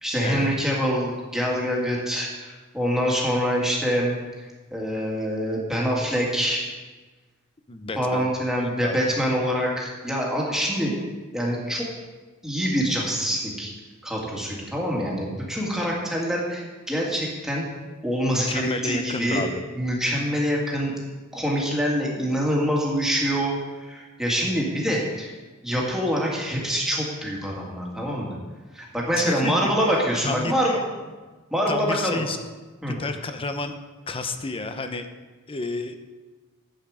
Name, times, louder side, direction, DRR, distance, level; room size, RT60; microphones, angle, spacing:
voice 1, 0.0-6.6 8.0-11.0 11.3-11.9 12.4-13.7 14.0-17.6 18.0-19.4 19.8-20.9 21.3-25.3 25.6-28.4 28.7-31.1 31.5-32.2 32.8-33.0, equal, ahead, -3 dB, 2.1 m, -25 dB
voice 2, 7.7-8.3 8.8-9.0 18.3-19.6 29.2-30.0 30.2-30.8 31.7-32.4 32.9-33.7 34.1-35.1 35.5-36.0, left 3 dB, 25° left, 7 dB, 0.7 m, -30 dB
11.5 x 8.2 x 5.0 m, 1.3 s
head